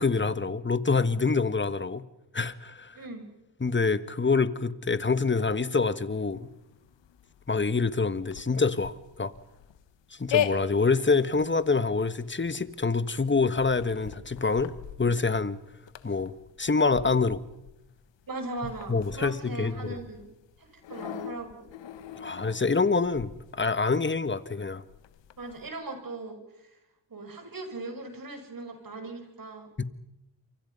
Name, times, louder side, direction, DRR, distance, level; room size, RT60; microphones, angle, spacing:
voice 1, 0.0-2.0 2.3-3.0 3.6-6.5 7.5-9.3 10.1-15.6 16.0-16.3 16.6-17.4 18.9-20.0 22.2-24.8 29.8-29.9, left 4 dB, 25° left, 1.5 m, -26 dB
voice 2, 2.9-3.3 18.3-20.3 20.6-21.6 25.4-26.8 27.1-29.7, right 3 dB, 50° right, 6.0 m, -39 dB
sound 1, 6.2-25.7, left 9 dB, 90° left, 1.4 m, -39 dB
28.0 x 24.5 x 5.5 m
cardioid pair, 55°, 43 cm